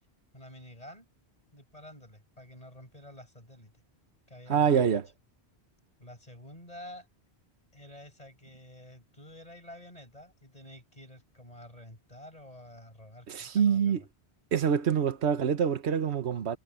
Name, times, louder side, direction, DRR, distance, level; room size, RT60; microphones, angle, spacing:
voice 1, 0.3-1.1 1.5-3.7 4.3-5.0 6.0-7.1 7.7-14.1, left 1 dB, 35° left, 5.8 m, -49 dB
voice 2, 4.5-5.1 13.3-14.0 14.5-16.6, right 7 dB, 75° right, 1.4 m, -26 dB
omnidirectional pair, 1.1 m